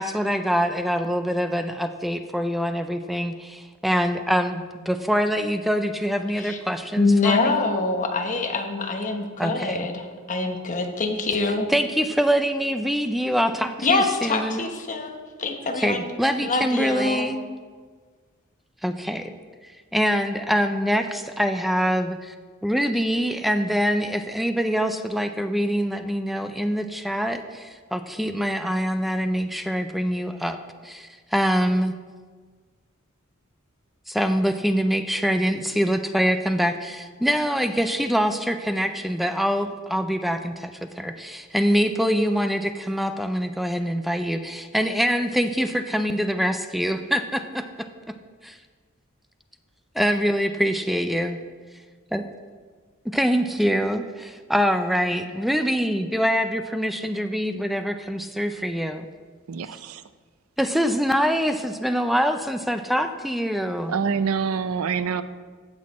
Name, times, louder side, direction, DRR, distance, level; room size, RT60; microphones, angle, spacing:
voice 1, 0.0-7.6 9.4-9.8 11.7-14.6 15.8-17.4 18.8-19.3 19.6-22.3 22.6-31.9 34.1-40.7 41.0-47.9 48.4-48.6 49.9-51.4 52.1-52.2 53.1-59.1 60.6-64.0, equal, ahead, 8 dB, 0.4 m, -24 dB
voice 2, 7.0-11.7 13.8-16.0 16.4-17.2, left 3 dB, 35° left, 4 dB, 1.1 m, -25 dB
voice 3, 59.5-60.0 63.9-65.2, right 6 dB, 85° right, 13 dB, 0.5 m, -26 dB
16.0 x 6.3 x 4.2 m, 1.5 s
head